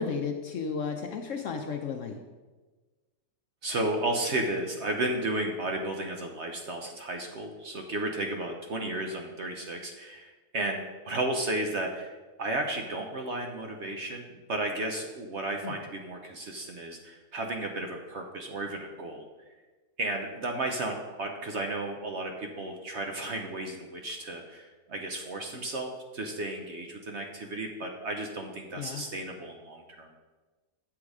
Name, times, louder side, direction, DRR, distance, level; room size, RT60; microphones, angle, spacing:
voice 1, 0.0-2.2 15.6-15.7 28.8-29.0, left 5 dB, 65° left, 4 dB, 0.8 m, -33 dB
voice 2, 3.6-19.3 20.0-30.1, right 2 dB, 55° right, 3 dB, 0.9 m, -33 dB
8.3 x 6.2 x 4.8 m, 1.3 s
omnidirectional pair, 1.8 m